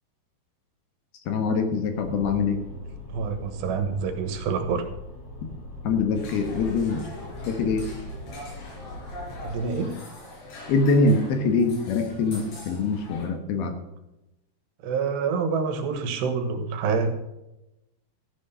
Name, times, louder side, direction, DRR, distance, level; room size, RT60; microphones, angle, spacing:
voice 1, 1.3-2.6 5.8-7.1 7.5-7.9 10.7-13.7, left 3 dB, 70° left, 6 dB, 3.2 m, -24 dB
sound 1, 1.9-9.7, left 1 dB, 35° left, 6.8 m, -40 dB
voice 2, 3.1-4.9 9.4-10.0 12.3-12.4 14.8-17.1, right 5 dB, 85° right, 7 dB, 3.5 m, -27 dB
sound 2, 6.1-13.3, left 2 dB, 90° left, 6.0 m, -42 dB
13.5 x 8.7 x 5.6 m, 0.93 s
omnidirectional pair, 4.8 m